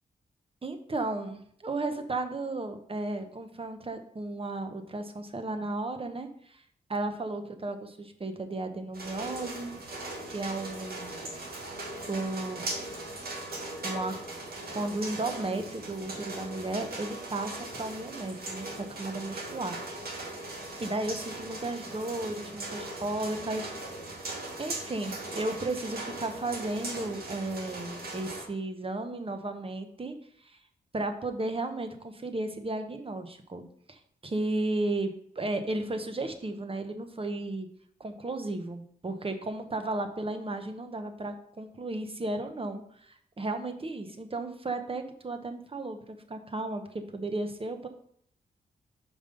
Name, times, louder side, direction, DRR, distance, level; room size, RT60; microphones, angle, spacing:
voice 1, 0.6-6.6 6.9-9.8 10.3-11.4 12.1-12.6 13.8-14.1 14.7-18.7 19.0-20.0 20.8-23.7 24.6-30.1 30.4-30.6 30.9-35.1 35.3-37.7 38.0-46.8 47.1-47.9, right 2 dB, 35° right, 7 dB, 1.1 m, -34 dB
sound 1, 8.9-28.4, right 2 dB, 65° right, 1.9 m, -39 dB
5.4 x 5.1 x 5.3 m, 0.65 s
cardioid pair, 55°, 17 cm